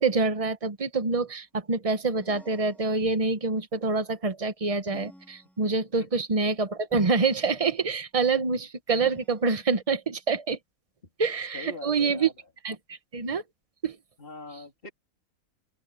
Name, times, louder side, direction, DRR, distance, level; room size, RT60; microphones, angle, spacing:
voice 1, 0.0-10.6 11.2-12.3 12.6-13.4 13.8-14.0, right 4 dB, 25° right, 1.0 m, -26 dB
sound 1, 2.2-3.4 4.9-6.0 6.9-7.8 9.0-10.0, equal, ahead, 3.5 m, -53 dB
voice 2, 11.5-12.5 14.2-14.9, left 3 dB, 35° left, 3.5 m, -43 dB
open air
omnidirectional pair, 1.6 m